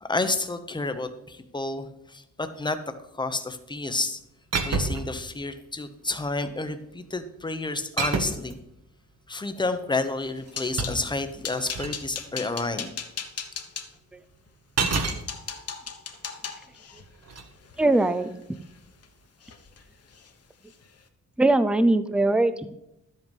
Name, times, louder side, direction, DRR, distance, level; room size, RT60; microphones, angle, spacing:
voice 1, 0.0-2.8 3.1-4.2 4.6-8.6 9.3-12.9 13.4-13.5, left 2 dB, 15° left, 9 dB, 0.9 m, -30 dB
sound 1, 4.5-5.2 6.1-6.5 8.0-8.5 10.2-12.0 14.8-15.2 17.2-17.5, right 4 dB, 55° right, 1.5 m, -28 dB
sound 2, 10.1-11.0 11.4-13.9 14.5-14.6 14.9-19.1 19.4-19.8 20.1-20.3 20.7-20.9, left 6 dB, 50° left, 1.2 m, -38 dB
voice 2, 17.8-18.3 21.4-22.7, right 2 dB, 5° right, 12 dB, 0.5 m, -21 dB
12.5 x 8.1 x 5.4 m, 0.84 s
wide cardioid pair, 165°, 30 cm